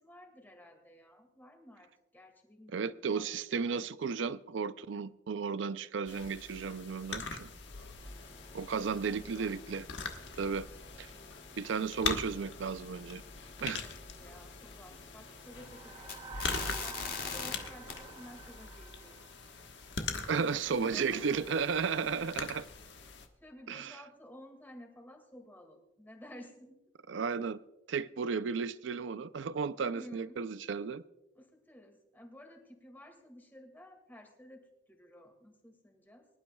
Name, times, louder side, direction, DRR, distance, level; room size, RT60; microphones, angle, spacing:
voice 1, 0.0-3.7 4.1-4.2 8.0-9.6 13.8-19.2 20.8-21.6 23.0-26.8 29.8-30.4 31.4-36.3, equal, 10° left, 2.0 m, -53 dB
voice 2, 2.7-7.5 8.5-9.9 10.4-10.7 11.0-11.1 11.6-13.2 13.6-13.8 20.3-22.7 23.7-24.0 27.1-27.6 27.9-31.0, right 5 dB, 70° right, 0.4 m, -34 dB
sound 1, 6.1-23.3, left 4 dB, 65° left, 1.3 m, -42 dB
sound 2, 8.0-17.5 17.9-18.5, left 6 dB, 50° left, 2.3 m, -47 dB
sound 3, 15.4-19.9, right 6 dB, 25° right, 0.6 m, -48 dB
24.5 x 12.0 x 2.3 m
head